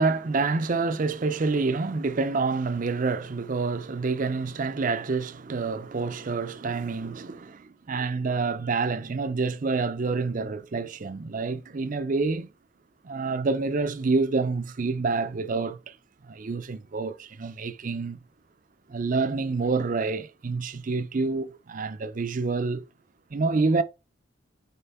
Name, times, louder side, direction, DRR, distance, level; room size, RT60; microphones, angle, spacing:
voice 1, 0.0-12.5 13.0-16.0 16.2-18.2 18.9-22.8 23.3-23.8, right 4 dB, 40° right, 0.5 m, -27 dB
5.5 x 4.3 x 4.2 m
head